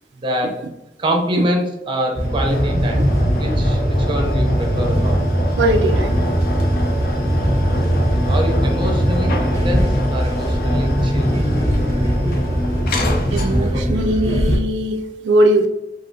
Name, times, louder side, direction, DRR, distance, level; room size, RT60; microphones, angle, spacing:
voice 1, 0.1-0.6 1.0-3.1 3.3-5.2 8.1-11.3 13.6-13.8, equal, 30° right, 2 dB, 0.6 m, -25 dB
sound 1, 2.1-14.6, equal, 20° left, 0.7 m, -19 dB
sound 2, 2.2-13.9, left 1 dB, 55° left, 0.5 m, -29 dB
voice 2, 5.6-6.2 13.3-15.7, right 1 dB, 80° right, 5 dB, 0.3 m, -19 dB
3.1 x 2.6 x 2.6 m, 0.93 s
head